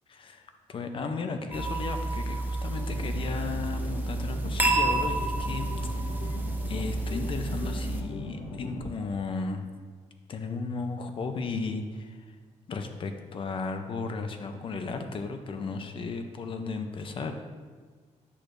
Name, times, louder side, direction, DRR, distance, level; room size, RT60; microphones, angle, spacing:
voice 1, 0.2-6.4 6.7-9.7 10.3-12.4 12.7-17.4, left 4 dB, 45° left, 6 dB, 0.6 m, -35 dB
sound 1, 1.5-8.0, right 2 dB, 15° right, 0.6 m, -30 dB
sound 2, 2.7-8.9, left 2 dB, 85° left, 1.2 m, -39 dB
8.4 x 6.5 x 2.6 m, 1.5 s
wide cardioid pair, 150°, 13 cm